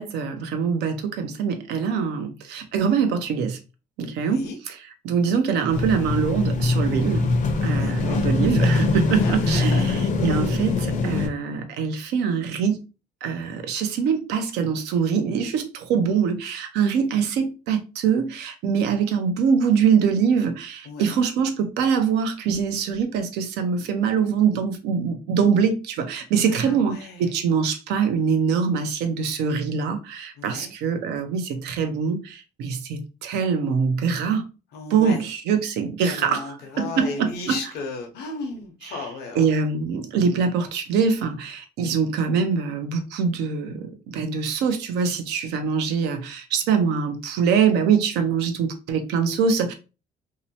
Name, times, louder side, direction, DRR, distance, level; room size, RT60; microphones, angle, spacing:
voice 1, 0.0-3.6 4.0-4.8 5.0-7.3 7.6-12.8 13.2-34.4 34.9-36.5 36.8-37.6 38.8-39.0 39.4-49.7, right 6 dB, 85° right, 0.6 m, -23 dB
voice 2, 4.2-4.6 7.7-8.2 9.1-10.0 20.9-21.2 26.5-27.3 30.4-30.7 34.7-35.2 36.0-39.5, left 3 dB, 80° left, 0.8 m, -35 dB
sound 1, 5.7-11.3, left 3 dB, 45° left, 0.5 m, -23 dB
2.7 x 2.0 x 2.7 m
cardioid pair, 110°, 17 cm